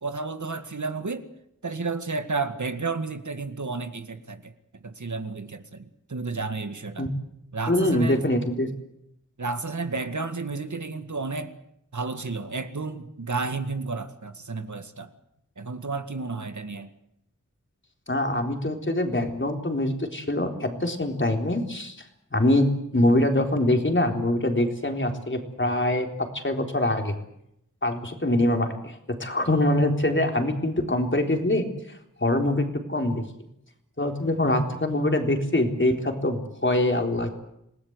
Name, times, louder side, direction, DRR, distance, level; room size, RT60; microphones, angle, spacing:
voice 1, 0.0-1.3 1.6-4.5 4.8-7.1 7.5-8.2 9.4-11.5 11.9-15.1 15.6-16.9, right 4 dB, 70° right, 9 dB, 2.1 m, -32 dB
voice 2, 7.7-8.7 18.1-22.0 22.3-26.1 26.3-27.1 27.8-33.2 34.0-37.3, left 1 dB, 40° left, 4 dB, 3.9 m, -24 dB
27.5 x 18.5 x 8.1 m, 0.78 s
wide cardioid pair, 70°, 31 cm